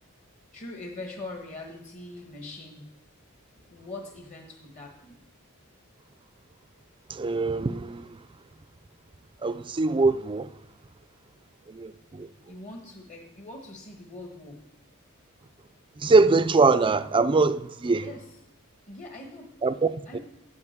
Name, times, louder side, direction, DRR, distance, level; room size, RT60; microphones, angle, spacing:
voice 1, 0.5-2.9 3.5-5.2 12.5-14.6 17.9-18.2 18.9-19.5 20.1-20.2, left 2 dB, 35° left, 1.4 m, -42 dB
voice 2, 7.1-8.2 9.4-10.5 11.7-12.3 16.0-18.1 19.6-20.2, right 3 dB, 25° right, 0.4 m, -23 dB
9.6 x 5.1 x 8.0 m
head